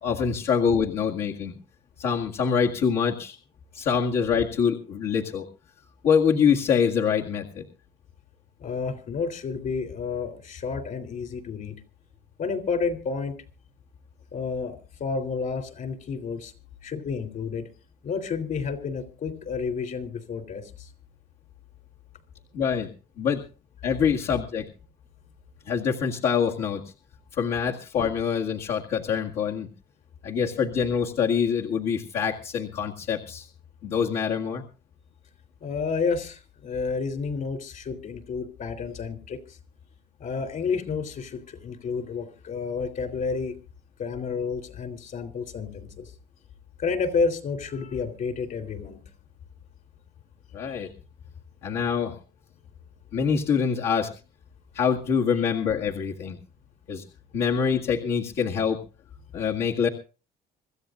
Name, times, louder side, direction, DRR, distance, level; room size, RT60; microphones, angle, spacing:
voice 1, 0.0-1.6 2.0-3.4 3.7-5.5 6.0-7.7 22.5-22.9 23.2-23.4 23.8-24.7 25.7-26.8 27.3-29.7 30.2-33.5 33.8-34.6 50.5-50.9 51.6-52.2 53.1-54.1 54.7-56.4 56.9-57.0 57.3-58.8 59.3-59.9, left 6 dB, 70° left, -2 dB, 2.0 m, -25 dB
voice 2, 8.6-11.8 12.4-13.4 14.3-16.5 16.8-17.7 18.0-20.9 35.6-39.4 40.2-43.6 44.0-46.1 46.8-49.0 50.7-50.8, left 5 dB, 55° left, 9 dB, 3.4 m, -30 dB
26.0 x 14.0 x 2.6 m, 0.33 s
cardioid pair, 110°, 17 cm